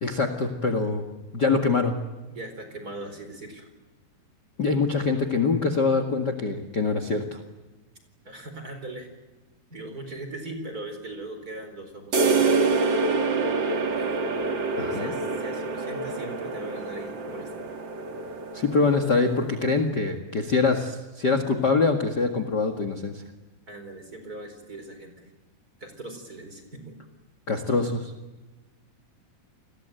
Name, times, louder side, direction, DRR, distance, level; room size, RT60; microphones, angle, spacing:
voice 1, 0.0-1.0 1.3-2.0 4.6-7.4 14.8-15.1 18.5-23.2 27.5-28.1, left 4 dB, 50° left, 8 dB, 1.2 m, -24 dB
voice 2, 2.3-3.7 8.2-9.1 9.7-12.7 13.7-14.2 14.9-17.7 23.7-25.3 25.8-27.0, right 2 dB, 20° right, 7 dB, 4.4 m, -40 dB
sound 1, 12.1-19.7, right 3 dB, 40° right, 1.7 m, -27 dB
30.0 x 21.0 x 9.1 m, 1.1 s
omnidirectional pair, 5.0 m